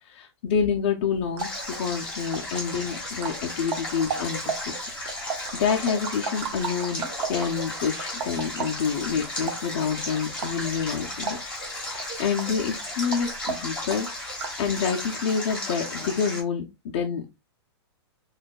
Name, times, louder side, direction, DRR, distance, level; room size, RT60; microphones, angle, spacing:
voice 1, 0.0-1.5 1.8-4.4 4.6-4.7 5.2-11.4 11.8-14.1 14.6-16.6 16.9-17.2, left 6 dB, 25° left, 0 dB, 0.3 m, -27 dB
sound 1, 1.1-14.7, right 6 dB, 75° right, 0.6 m, -36 dB
Stream, 1.4-16.4, left 1 dB, 5° left, 1.8 m, -35 dB
6.1 x 2.2 x 2.3 m, 0.24 s
supercardioid pair, 180°, 14 cm